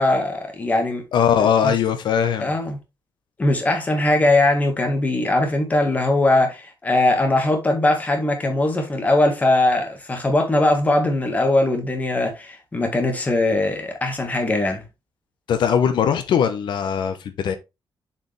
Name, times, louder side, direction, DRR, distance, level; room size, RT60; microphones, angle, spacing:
voice 1, 0.0-1.0 1.6-1.7 2.4-2.8 3.4-14.8, left 2 dB, 20° left, 1.8 m, -20 dB
voice 2, 1.1-2.5 15.5-17.6, left 8 dB, 85° left, 1.1 m, -20 dB
7.3 x 5.1 x 3.4 m
wide cardioid pair, 160°, 8 cm